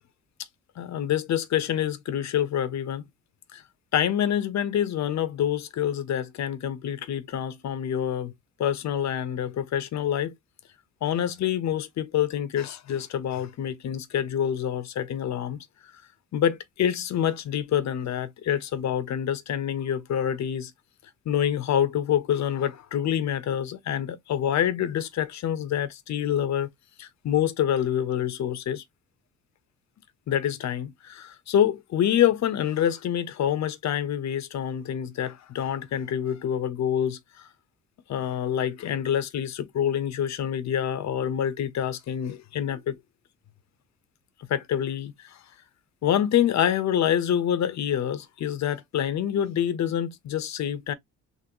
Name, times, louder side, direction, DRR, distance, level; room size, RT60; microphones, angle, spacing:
voice 1, 0.8-3.1 3.5-3.6 3.9-8.3 8.6-10.3 11.0-15.7 16.3-20.7 21.3-26.7 27.0-28.8 30.3-37.2 38.1-43.0 44.5-45.4 46.0-50.9, left 10 dB, 65° left, 0.9 m, -26 dB
4.0 x 2.7 x 2.9 m
cardioid pair, 90°, 30 cm